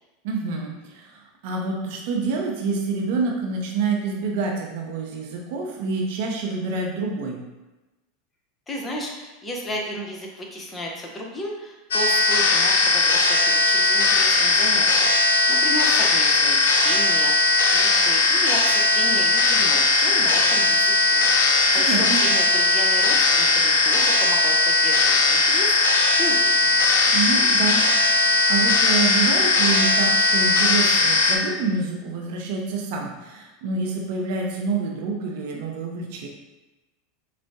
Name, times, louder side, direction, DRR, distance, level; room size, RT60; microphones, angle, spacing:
voice 1, 0.2-7.4 21.7-22.2 27.1-36.3, right 4 dB, 65° right, 0 dB, 0.6 m, -27 dB
voice 2, 8.7-26.9, equal, 20° left, -1 dB, 0.7 m, -34 dB
sound 1, 11.9-31.4, left 2 dB, 80° left, 0.4 m, -19 dB
4.4 x 2.0 x 2.7 m, 1.1 s
hypercardioid pair, 95°, 0 cm